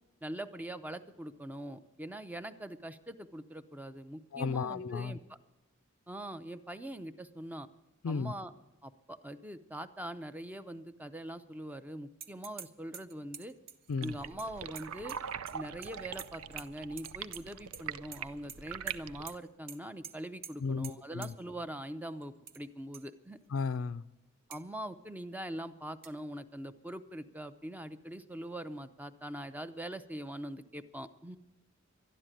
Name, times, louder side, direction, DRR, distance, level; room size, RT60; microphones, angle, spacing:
voice 1, 0.2-5.4 6.1-7.7 8.1-8.5 8.8-13.5 14.0-15.2 15.5-23.4 24.5-31.4, right 1 dB, 10° right, 0.5 m, -43 dB
voice 2, 4.3-5.2 8.0-8.3 13.9-14.1 20.6-21.3 23.5-24.0, left 5 dB, 65° left, 0.4 m, -34 dB
sound 1, 12.2-12.7 12.9-15.6 15.8-16.7 17.0-17.8 18.1-18.6 18.9-19.0 19.3-19.4 19.7-19.8 20.0-20.1 20.4-20.5 20.8-20.9 21.2-21.3 22.2-22.6 22.9-23.0 23.6-23.7 24.5-24.6 26.0-26.1, right 7 dB, 45° right, 0.7 m, -47 dB
sound 2, 14.0-19.4, right 8 dB, 80° right, 0.5 m, -43 dB
12.0 x 11.0 x 9.0 m
head